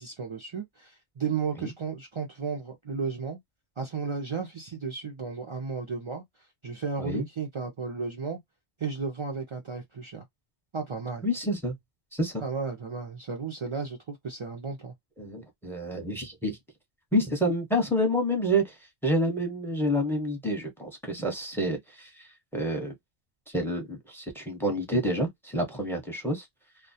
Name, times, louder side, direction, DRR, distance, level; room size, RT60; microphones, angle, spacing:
voice 1, 0.0-3.4 3.8-6.2 6.6-8.4 8.8-10.2 10.7-11.2 12.4-14.9, right 5 dB, 55° right, 0.3 m, -34 dB
voice 2, 11.2-11.8 12.1-12.4 15.2-16.6 17.1-18.7 19.0-22.3 22.5-22.9 23.5-26.5, equal, ahead, 0.7 m, -28 dB
2.2 x 2.1 x 2.7 m
omnidirectional pair, 1.2 m